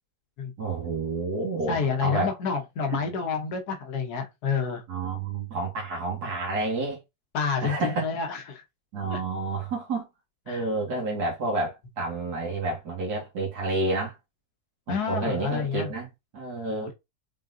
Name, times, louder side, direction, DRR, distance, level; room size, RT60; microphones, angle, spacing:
voice 1, 0.6-2.3 2.9-3.1 4.9-7.0 7.6-8.0 8.9-10.1 10.5-14.2 14.9-16.9, right 3 dB, 85° right, 2.0 m, -30 dB
voice 2, 1.7-4.8 7.3-8.6 9.1-9.2 10.5-10.6 14.9-15.9 16.7-16.9, left 5 dB, 85° left, 1.5 m, -29 dB
4.5 x 3.8 x 2.5 m
omnidirectional pair, 1.6 m